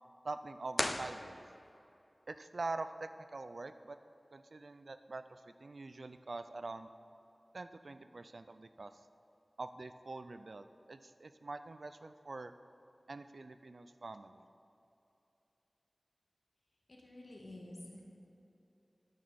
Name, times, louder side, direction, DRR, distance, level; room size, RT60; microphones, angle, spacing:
voice 1, 0.2-1.4 2.3-4.0 4.3-6.9 7.5-8.9 9.6-12.5 13.1-14.4, right 3 dB, 80° right, 11 dB, 0.3 m, -45 dB
sound 1, 0.7-1.9, left 1 dB, 30° left, 0.4 m, -37 dB
voice 2, 16.9-18.0, left 1 dB, 70° left, -2 dB, 1.6 m, -50 dB
9.5 x 8.8 x 4.1 m, 2.8 s
wide cardioid pair, 45°, 0 cm